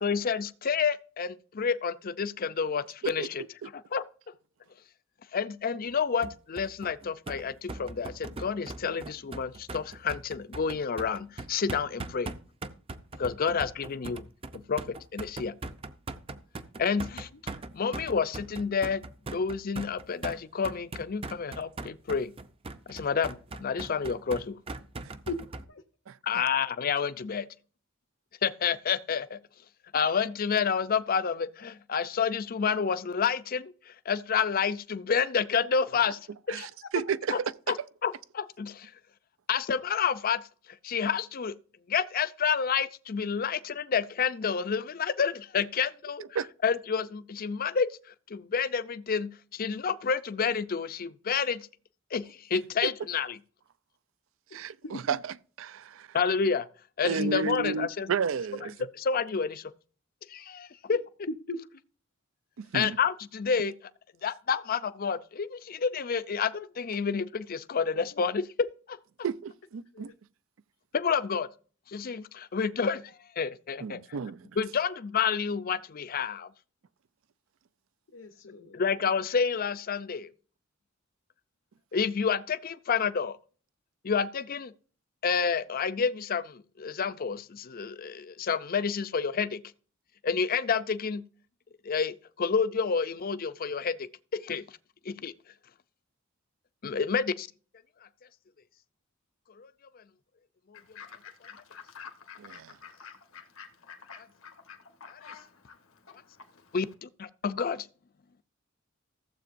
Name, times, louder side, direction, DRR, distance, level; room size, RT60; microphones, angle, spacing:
voice 1, 0.0-3.4 3.7-4.1 5.3-12.3 13.2-14.2 14.7-14.8 15.1-15.5 16.8-17.2 17.8-19.0 19.3-22.3 22.9-24.6 26.2-27.5 28.4-29.4 29.9-36.2 36.5-36.7 37.3-37.4 37.7-37.8 38.0-38.9 39.5-40.4 40.8-41.5 41.9-46.2 46.6-47.9 48.3-51.7 52.1-53.4 56.1-56.7 57.0-58.1 58.9-59.7 60.3-61.0 62.7-63.7 64.2-69.0 70.9-71.5 71.9-74.0 74.6-76.5 78.7-80.3 81.9-83.4 84.0-84.7 85.2-89.6 90.2-91.2 91.8-94.6 95.1-95.3 96.8-97.5 99.6-99.7 99.9-100.0 100.7-100.8 104.2-104.3 105.1-105.2 106.7-107.9, left 6 dB, 45° left, 0.5 m, -29 dB
sound 1, 6.2-25.6, right 2 dB, 30° right, 0.5 m, -40 dB
voice 2, 25.3-25.8 35.9-36.0 43.3-43.4 54.5-55.2 61.5-61.6 62.6-62.7 69.9-70.1 78.1-78.8, left 2 dB, 70° left, 0.8 m, -40 dB
voice 3, 36.5-37.5 46.3-46.5 52.8-52.9 54.5-56.1 57.0-58.7 62.6-63.0 69.2-70.1 73.8-74.5 102.4-102.8, right 6 dB, 75° right, 0.4 m, -32 dB
Fowl / Bird, 100.7-106.9, left 6 dB, 90° left, 1.3 m, -49 dB
15.0 x 7.6 x 2.6 m
head